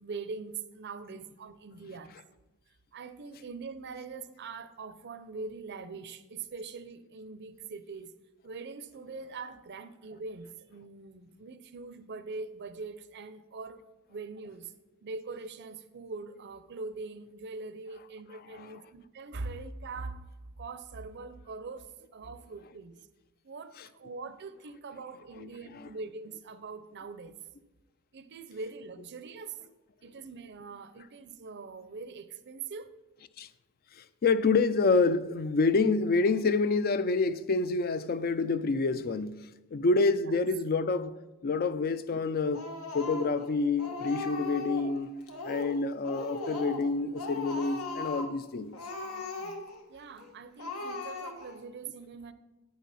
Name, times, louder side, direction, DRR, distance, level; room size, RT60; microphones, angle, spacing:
voice 1, 0.0-2.1 2.9-8.1 8.4-13.8 14.1-14.7 15.0-20.3 20.6-22.9 23.4-27.3 28.1-29.6 30.0-32.9 40.2-40.3 49.0-49.6 49.9-52.3, right 4 dB, 55° right, 0.6 m, -42 dB
voice 2, 34.0-41.2 41.4-42.7 42.9-45.1 45.4-48.8, left 3 dB, 45° left, 0.4 m, -27 dB
Speech, 42.5-43.5 43.8-44.9 45.3-45.8 46.0-46.9 47.1-48.3 48.7-49.8 50.2-50.3 50.6-51.6, left 3 dB, 90° left, 1.4 m, -38 dB
9.5 x 9.2 x 4.2 m
head